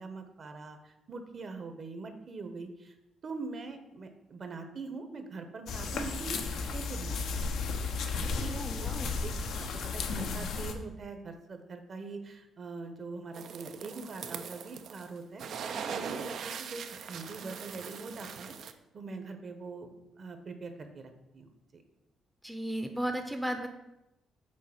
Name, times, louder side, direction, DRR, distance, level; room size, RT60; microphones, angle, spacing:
voice 1, 0.0-3.0 3.2-7.5 8.1-9.7 9.9-15.4 15.9-18.6 18.9-19.9 20.2-21.8, right 3 dB, 45° right, 7 dB, 1.0 m, -43 dB
sound 1, 5.7-10.7, left 4 dB, 75° left, 0.8 m, -34 dB
voice 2, 8.5-9.1 22.4-23.7, right 1 dB, 5° right, 6 dB, 0.7 m, -35 dB
sound 2, 13.3-15.1 15.4-18.7, right 6 dB, 65° right, 0.5 m, -40 dB
6.5 x 4.1 x 5.8 m, 0.92 s
cardioid pair, 90°, 0 cm